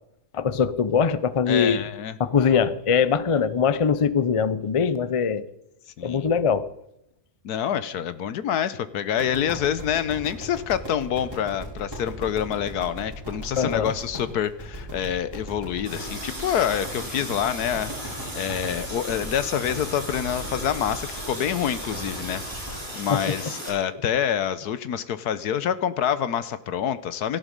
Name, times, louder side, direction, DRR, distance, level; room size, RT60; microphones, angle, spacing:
voice 1, 0.3-1.8 2.2-5.4 6.0-6.7 13.6-13.9 23.1-23.3, left 6 dB, 55° left, 15 dB, 0.3 m, -22 dB
voice 2, 1.5-2.2 6.0-6.3 7.4-22.7 23.0-27.4, left 9 dB, 75° left, 14 dB, 1.4 m, -27 dB
sound 1, 9.2-22.8, right 1 dB, 15° right, 7.0 m, -38 dB
Water tap faucet, 15.8-23.7, equal, 30° right, 8.1 m, -36 dB
18.0 x 13.5 x 5.3 m, 0.80 s
omnidirectional pair, 1.7 m